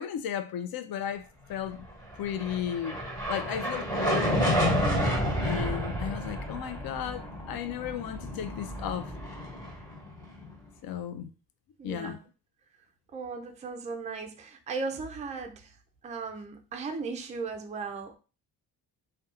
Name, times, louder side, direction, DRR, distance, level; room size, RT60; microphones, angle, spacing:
voice 1, 0.0-1.8 2.2-3.0 3.3-4.4 5.4-9.1 10.8-11.3 11.8-12.2, left 9 dB, 55° left, 10 dB, 0.5 m, -34 dB
sound 1, 2.1-10.5, equal, 10° left, 1.3 m, -30 dB
voice 2, 11.8-12.2 13.1-15.7 16.0-18.2, right 4 dB, 20° right, 5 dB, 0.3 m, -37 dB
2.7 x 2.2 x 2.4 m, 0.34 s
cardioid pair, 80°, 43 cm